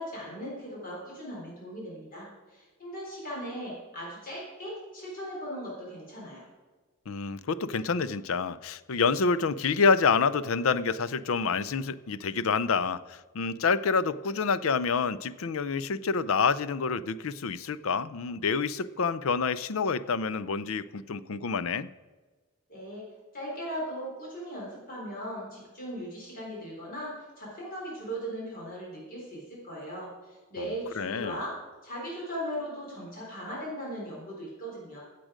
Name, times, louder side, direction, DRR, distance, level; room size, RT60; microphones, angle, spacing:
voice 1, 0.0-6.5 22.7-23.0 23.3-31.5 31.8-35.0, equal, 40° left, -4 dB, 3.9 m, -38 dB
voice 2, 7.1-21.9 30.6-31.4, left 5 dB, 65° left, 16 dB, 0.5 m, -28 dB
15.0 x 7.7 x 5.0 m, 1.3 s
head